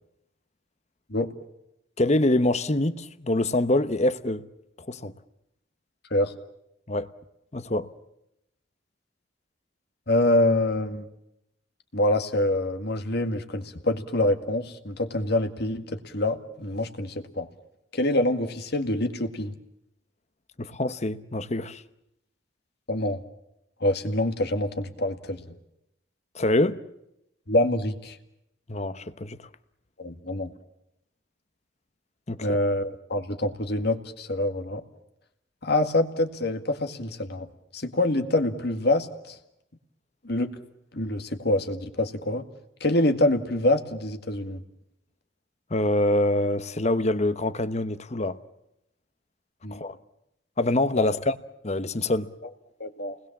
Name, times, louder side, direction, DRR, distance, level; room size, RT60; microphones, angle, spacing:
voice 1, 2.0-4.4 4.8-5.1 6.9-7.1 7.5-7.9 20.6-21.8 26.3-26.8 28.7-29.4 32.3-32.6 45.7-48.4 49.7-50.0 50.6-51.4 51.6-52.3, left 1 dB, 35° left, 1.0 m, -25 dB
voice 2, 10.1-11.1 11.9-17.5 17.9-19.5 22.9-23.2 23.8-25.5 27.5-28.2 30.0-30.5 32.4-34.8 35.6-37.5 37.7-39.4 40.2-40.5 40.9-42.4 42.8-44.6 49.6-49.8 51.0-51.1 52.8-53.1, left 1 dB, 55° left, 2.0 m, -26 dB
29.5 x 20.5 x 7.3 m
head